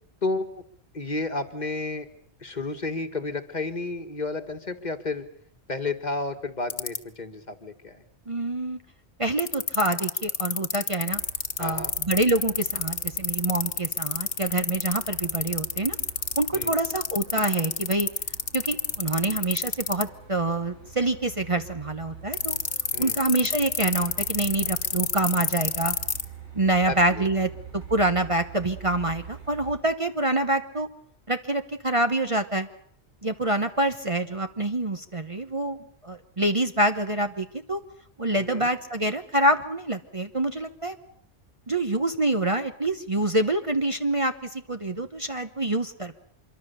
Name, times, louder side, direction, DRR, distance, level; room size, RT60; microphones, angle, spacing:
voice 1, 0.9-2.1 2.4-5.3 5.7-8.0 11.6-11.9 16.5-16.7 22.9-23.2 26.8-27.3 38.3-38.7, left 3 dB, 40° left, 8 dB, 1.7 m, -31 dB
sound 1, 6.7-7.0 9.4-20.0 22.3-26.2, left 6 dB, 75° left, 1.6 m, -26 dB
voice 2, 8.3-8.8 9.2-11.2 11.6-16.0 16.4-18.1 18.5-22.6 23.0-25.9 26.5-30.9 31.3-32.7 33.2-35.8 36.0-37.8 38.2-41.0 41.7-46.2, right 2 dB, 30° right, 8 dB, 1.0 m, -26 dB
Truck, 11.1-29.8, right 6 dB, 80° right, 7.4 m, -45 dB
25.5 x 23.5 x 6.9 m, 0.65 s
omnidirectional pair, 1.2 m